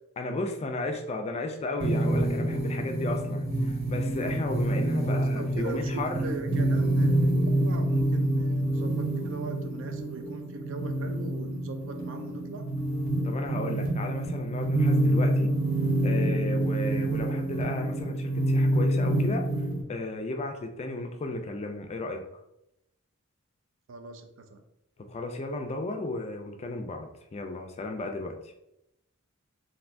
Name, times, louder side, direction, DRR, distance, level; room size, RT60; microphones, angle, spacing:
voice 1, 0.2-6.3 13.2-15.5 16.0-19.5 19.9-22.2 25.0-28.4, left 2 dB, 30° left, 4 dB, 0.4 m, -34 dB
sound 1, 1.8-19.8, right 1 dB, 45° right, 1.1 m, -27 dB
voice 2, 5.0-12.6 23.9-24.6, right 3 dB, 60° right, 5 dB, 0.4 m, -40 dB
3.3 x 2.6 x 2.5 m, 0.83 s
head